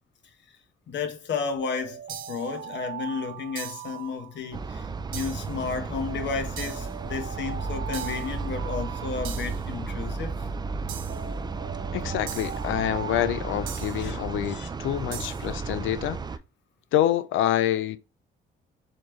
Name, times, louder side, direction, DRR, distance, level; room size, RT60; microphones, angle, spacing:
voice 1, 0.9-2.0 2.3-10.4 14.0-14.2 14.5-14.7, left 5 dB, 65° left, 1.0 m, -32 dB
Alarm, 1.6-4.9 6.1-9.9 11.1-14.3, right 8 dB, 40° right, 0.8 m, -41 dB
sound 1, 2.1-2.5 3.5-4.0 5.1-5.5 6.6-7.0 7.9-8.3 9.2-9.6 10.9-11.3 12.3-12.7 13.7-14.1 15.1-15.5, right 9 dB, 85° right, 0.7 m, -40 dB
sound 2, 4.5-16.4, right 4 dB, 20° right, 0.3 m, -33 dB
voice 2, 11.9-16.2 16.9-18.0, left 12 dB, 80° left, 0.5 m, -26 dB
4.2 x 2.9 x 3.1 m
cardioid pair, 90°, 20 cm